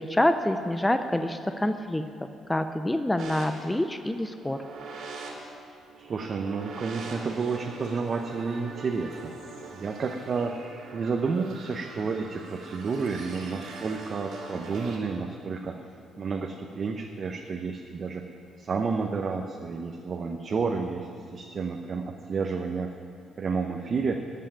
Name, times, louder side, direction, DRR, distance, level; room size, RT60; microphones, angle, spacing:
voice 1, 0.0-2.0 2.5-4.6, left 1 dB, 10° left, 8 dB, 0.5 m, -26 dB
sound 1, 3.2-15.0, right 3 dB, 80° right, 2.5 m, -43 dB
voice 2, 6.0-9.3 9.7-10.6 10.9-15.8 16.2-18.3 18.6-22.9 23.4-24.2, right 4 dB, 45° right, 3 dB, 0.8 m, -30 dB
14.5 x 5.7 x 9.9 m, 2.4 s
cardioid pair, 90°, 0 cm